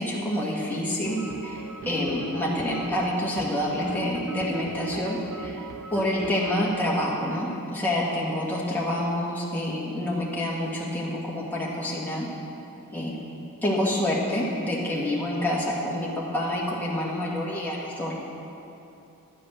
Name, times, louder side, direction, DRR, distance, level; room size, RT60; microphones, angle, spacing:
voice 1, 0.0-5.6 5.9-12.3 12.9-13.1 13.6-16.1 16.3-18.1, left 1 dB, 10° left, -5 dB, 1.9 m, -27 dB
sound 1, 1.0-6.6, right 4 dB, 70° right, 0.7 m, -38 dB
12.0 x 7.6 x 6.5 m, 2.8 s
head